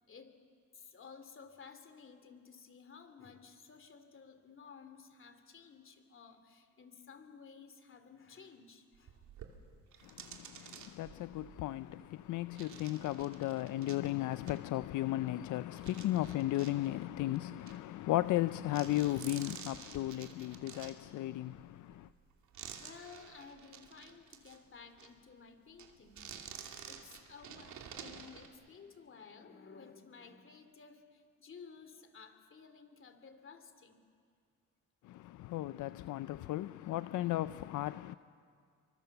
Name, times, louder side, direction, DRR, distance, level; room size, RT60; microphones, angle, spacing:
voice 1, 0.1-0.4 0.7-9.2 9.9-10.1 10.6-10.8 22.8-26.6 26.9-34.0, left 5 dB, 45° left, 2.8 m, -55 dB
sound 1, 8.9-15.4 15.8-18.4 18.7-24.6 24.9-25.1 25.7-28.5, right 7 dB, 70° right, 2.7 m, -51 dB
voice 2, 10.0-22.1 35.0-38.1, left 15 dB, 80° left, 0.6 m, -35 dB
28.0 x 24.0 x 7.1 m
cardioid pair, 90°, 30 cm